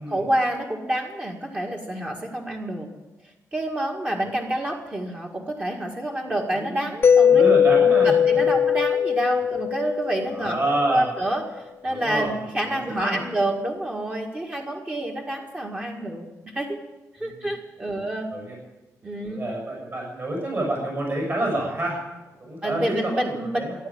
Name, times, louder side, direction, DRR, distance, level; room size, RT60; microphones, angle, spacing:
voice 1, 0.0-2.9 3.5-7.4 8.0-10.6 10.9-16.3 16.5-16.8 17.2-18.3 19.0-19.4 22.6-23.6, right 1 dB, 20° right, 0 dB, 1.9 m, -28 dB
voice 2, 6.3-6.9 7.2-8.4 10.3-11.0 11.9-12.3 12.7-13.2 17.2-17.5 17.8-18.6 19.2-22.0 22.4-23.8, right 1 dB, 35° right, -1 dB, 6.8 m, -28 dB
Mallet percussion, 7.0-10.8, left 8 dB, 35° left, 0.7 m, -19 dB
15.0 x 11.0 x 8.7 m, 1.0 s
wide cardioid pair, 140°, 6 cm